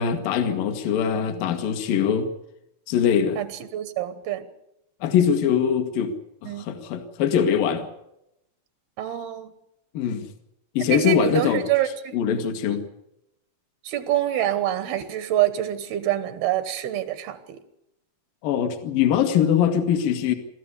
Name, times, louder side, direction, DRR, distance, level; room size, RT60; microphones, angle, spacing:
voice 1, 0.0-2.3 2.9-3.4 5.0-6.1 6.4-7.9 9.9-10.3 10.7-11.6 12.1-12.8 18.4-20.3, left 8 dB, 70° left, 7 dB, 3.2 m, -22 dB
voice 2, 3.4-4.5 6.5-6.7 9.0-9.5 10.9-12.2 13.8-17.6, right 12 dB, 85° right, 11 dB, 3.3 m, -26 dB
26.5 x 13.5 x 8.3 m, 0.83 s
omnidirectional pair, 4.3 m